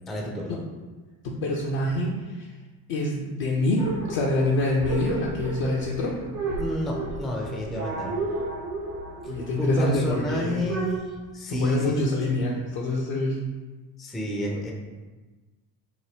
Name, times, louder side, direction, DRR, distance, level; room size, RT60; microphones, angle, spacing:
voice 1, 0.1-0.6 6.6-8.1 9.6-11.1 11.3-12.5 14.0-14.7, equal, ahead, -1 dB, 0.3 m, -30 dB
voice 2, 1.2-2.1 2.9-6.1 9.3-10.6 11.5-13.4, left 2 dB, 65° left, -2 dB, 0.6 m, -25 dB
sound 1, 3.8-11.0, right 2 dB, 90° right, 0.9 m, -33 dB
3.0 x 2.2 x 3.2 m, 1.3 s
hypercardioid pair, 60°, 49 cm